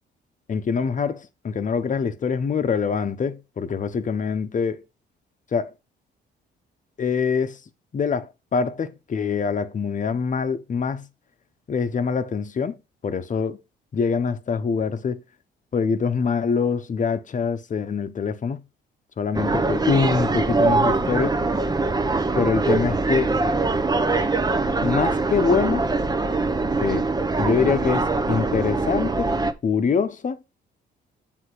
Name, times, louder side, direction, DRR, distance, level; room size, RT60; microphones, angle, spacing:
voice 1, 0.5-4.8 5.5-5.7 7.0-7.6 7.9-11.1 11.7-12.8 13.0-13.6 13.9-15.2 15.7-18.6 19.2-21.4 22.3-23.3 24.8-25.8 26.8-27.1 27.4-29.3 29.6-30.4, left 5 dB, 40° left, 1.0 m, -24 dB
sound 1, 19.3-29.5, right 3 dB, 20° right, 0.9 m, -23 dB
8.0 x 3.6 x 4.9 m
cardioid pair, 90°, 20 cm